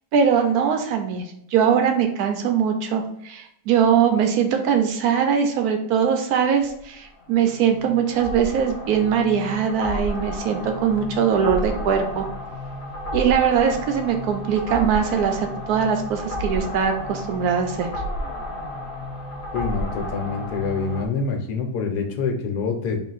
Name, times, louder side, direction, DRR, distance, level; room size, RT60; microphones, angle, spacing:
voice 1, 0.1-1.2 1.5-12.3 13.1-17.9, right 7 dB, 70° right, 4 dB, 1.0 m, -21 dB
sound 1, 6.6-21.1, left 1 dB, 55° left, 1.1 m, -32 dB
voice 2, 19.5-23.0, left 5 dB, 75° left, 3 dB, 1.2 m, -26 dB
3.8 x 2.5 x 3.9 m, 0.73 s
omnidirectional pair, 1.8 m